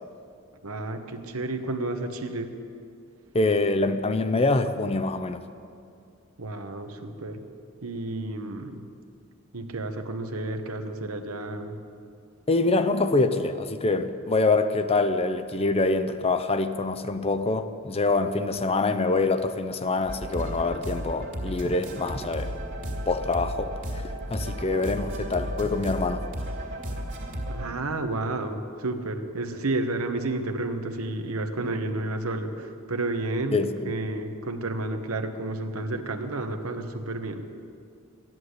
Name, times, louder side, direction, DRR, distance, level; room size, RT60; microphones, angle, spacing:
voice 1, 0.6-2.5 6.4-7.4 7.8-8.8 9.5-11.8 27.5-37.4, right 2 dB, 80° right, 6 dB, 1.2 m, -31 dB
voice 2, 3.3-5.4 12.5-22.5 23.1-24.0 24.3-26.2 33.5-33.9, left 3 dB, 30° left, 10 dB, 0.6 m, -25 dB
sound 1, 20.0-27.7, equal, 55° right, 2.6 m, -34 dB
14.5 x 11.0 x 8.1 m, 2.4 s
head